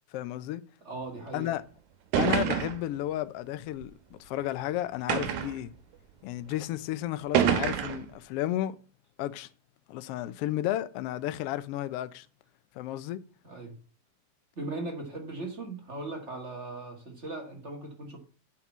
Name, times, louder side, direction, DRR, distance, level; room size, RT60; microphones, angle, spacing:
voice 1, 0.1-0.6 1.3-1.6 2.1-5.7 6.2-8.8 9.2-9.5 9.9-12.3 12.7-13.2, left 13 dB, 85° left, 1.3 m, -32 dB
voice 2, 0.8-1.5 13.4-13.8 14.6-18.2, right 2 dB, 25° right, 1.7 m, -38 dB
sound 1, 1.5-1.6 2.1-2.9 3.8-3.9 5.1-5.6 6.5-6.6 7.3-8.1, right 9 dB, 75° right, 2.4 m, -27 dB
8.5 x 5.3 x 7.3 m
omnidirectional pair, 3.6 m